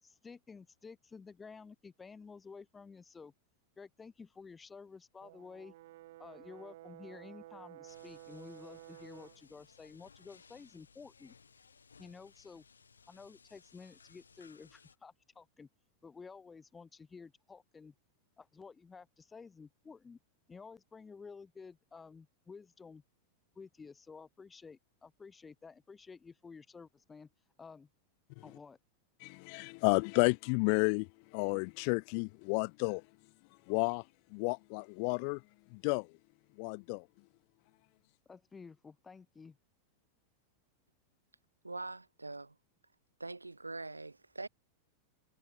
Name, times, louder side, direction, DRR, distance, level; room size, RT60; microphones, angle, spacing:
voice 1, 0.0-3.3 3.8-5.7 6.2-11.3 12.0-12.6 13.1-15.7 16.0-17.9 18.4-20.2 20.5-23.0 23.6-27.3 27.6-27.9 28.4-28.8 38.3-39.6, left 5 dB, 15° left, 5.6 m, -52 dB
Brass instrument, 5.2-9.4, right 16 dB, 55° right, 4.6 m, -53 dB
sound 1, 7.9-15.0, left 5 dB, 75° left, 4.0 m, -62 dB
voice 2, 29.2-33.0 33.7-34.0 34.3-35.4 35.7-36.1 36.6-37.0, left 40 dB or more, 45° left, 0.6 m, -31 dB
voice 3, 41.6-42.5 43.2-44.5, right 3 dB, 80° right, 2.8 m, -43 dB
figure-of-eight pair, 90°, 0 cm